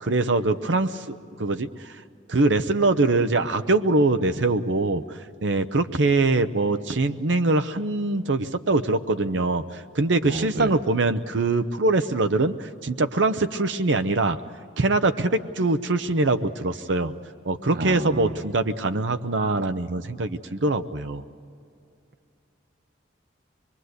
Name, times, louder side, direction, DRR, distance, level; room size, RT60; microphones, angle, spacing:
voice 1, 0.0-1.9 2.3-14.4 14.8-17.1 17.5-21.2, right 2 dB, 85° right, 9 dB, 0.8 m, -23 dB
voice 2, 10.2-10.7 17.7-18.4, right 2 dB, 55° right, 11 dB, 0.8 m, -31 dB
24.5 x 22.5 x 8.0 m, 2.5 s
head